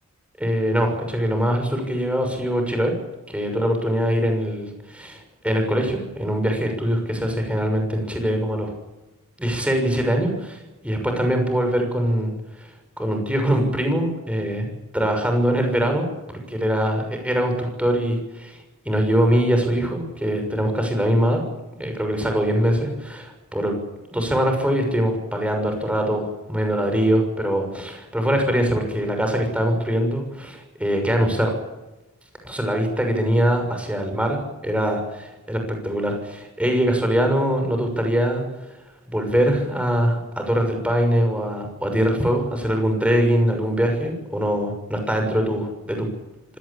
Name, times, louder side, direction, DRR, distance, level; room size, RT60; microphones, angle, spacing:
voice 1, 0.4-2.9 3.3-8.7 9.4-10.6 10.8-12.3 12.6-12.7 13.0-14.7 14.9-18.6 18.8-21.4 21.8-23.7 24.1-31.6 32.4-38.4 39.1-46.1, equal, 5° right, 4 dB, 6.4 m, -22 dB
25.5 x 18.0 x 8.7 m, 1.0 s
head